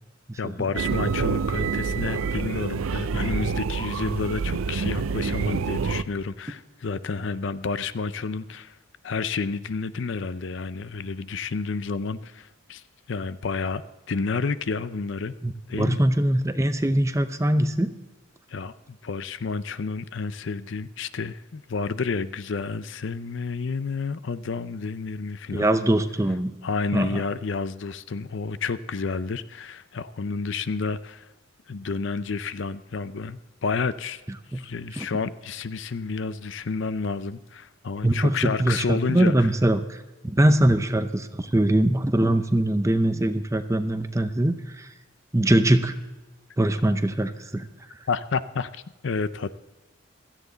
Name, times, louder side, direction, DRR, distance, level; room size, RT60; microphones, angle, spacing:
voice 1, 0.4-8.8 9.0-12.8 13.1-13.8 14.1-15.3 15.7-16.0 18.5-25.8 26.6-31.3 31.7-34.2 34.5-39.5 48.1-49.6, left 4 dB, 60° left, 15 dB, 0.5 m, -30 dB
sound 1, 0.8-6.0, right 5 dB, 75° right, 0.5 m, -27 dB
voice 2, 15.4-17.9 25.5-26.5 26.9-27.2 35.0-35.1 38.0-44.9 45.3-45.9 46.6-47.7, right 1 dB, 15° right, 9 dB, 0.6 m, -22 dB
16.5 x 13.0 x 4.0 m, 1.2 s
head